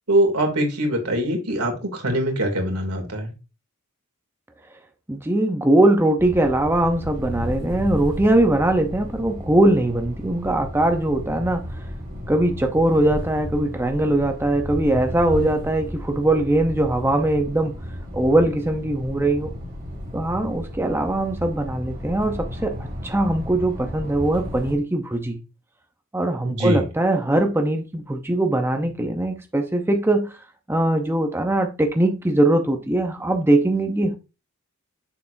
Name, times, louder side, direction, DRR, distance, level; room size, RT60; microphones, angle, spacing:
voice 1, 0.1-3.3 26.4-26.8, right 1 dB, 90° right, 2.5 m, -23 dB
voice 2, 5.1-11.6 12.3-17.7 18.1-19.5 20.1-25.4 26.1-30.3 30.7-34.2, right 1 dB, 10° right, 0.6 m, -21 dB
sound 1, 6.2-24.7, equal, 40° right, 3.0 m, -33 dB
7.0 x 6.6 x 2.6 m
head